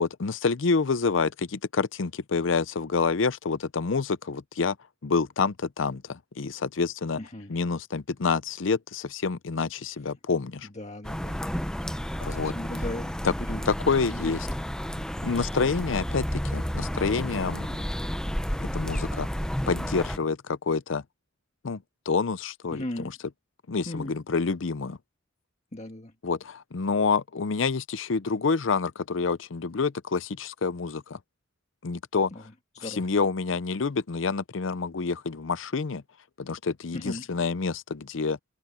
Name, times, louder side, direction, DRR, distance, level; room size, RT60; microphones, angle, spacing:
voice 1, 0.0-4.8 5.0-7.2 7.5-10.7 12.2-12.5 13.2-13.3 13.7-14.5 15.2-17.9 18.7-19.3 19.7-21.0 21.6-21.8 22.1-23.1 23.7-25.0 26.2-31.2 31.8-32.3 32.8-36.0 36.4-38.4, left 4 dB, 75° left, 0.6 m, -27 dB
voice 2, 7.2-7.5 10.7-11.4 12.3-13.6 14.0-14.4 22.7-23.1 23.9-24.1 25.7-26.1 32.3-33.1 36.9-37.3, left 1 dB, 35° left, 1.7 m, -38 dB
sound 1, 11.0-20.2, equal, 5° left, 0.7 m, -31 dB
head